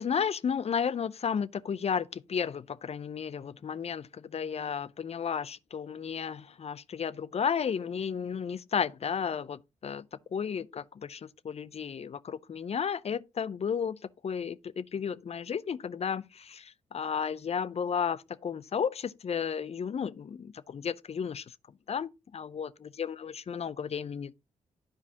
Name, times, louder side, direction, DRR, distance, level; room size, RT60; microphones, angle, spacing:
voice 1, 0.0-21.5 21.9-24.3, left 7 dB, 45° left, 0.5 m, -33 dB
11.0 x 4.8 x 2.8 m
hypercardioid pair, 40°, 15 cm